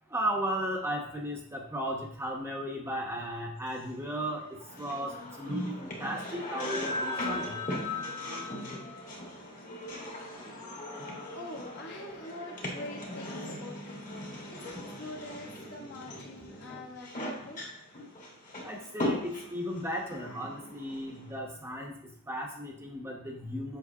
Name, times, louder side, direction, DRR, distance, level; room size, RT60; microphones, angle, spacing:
voice 1, 0.1-4.4 4.8-5.1 5.4-7.6 18.6-21.9 22.3-23.8, equal, 10° right, 0 dB, 0.9 m, -35 dB
sound 1, 3.8-21.4, left 1 dB, 35° left, 1.5 m, -38 dB
voice 2, 10.8-17.6, left 1 dB, 50° left, -1 dB, 1.3 m, -45 dB
7.3 x 5.6 x 2.8 m, 0.65 s
head